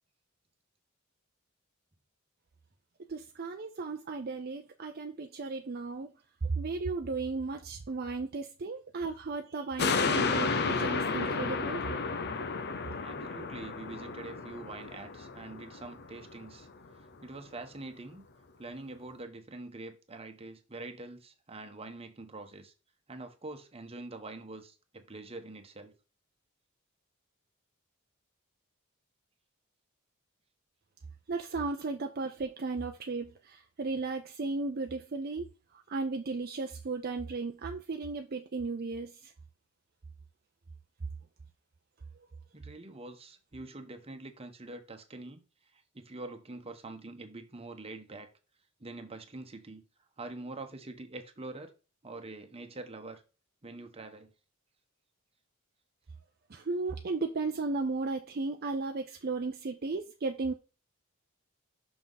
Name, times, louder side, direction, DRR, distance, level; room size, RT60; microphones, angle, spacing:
voice 1, 3.1-6.1 6.4-11.8 31.3-39.3 56.5-60.5, right 3 dB, 50° right, 0.6 m, -35 dB
sound 1, 9.8-16.4 16.9-17.0, left 4 dB, 50° left, 0.7 m, -32 dB
voice 2, 13.0-16.7 17.2-18.2 18.6-22.7 23.1-25.9 42.5-48.3 48.8-49.8 50.2-51.7 52.0-53.2 53.6-54.3, right 2 dB, 30° right, 1.1 m, -45 dB
6.1 x 5.8 x 4.0 m
head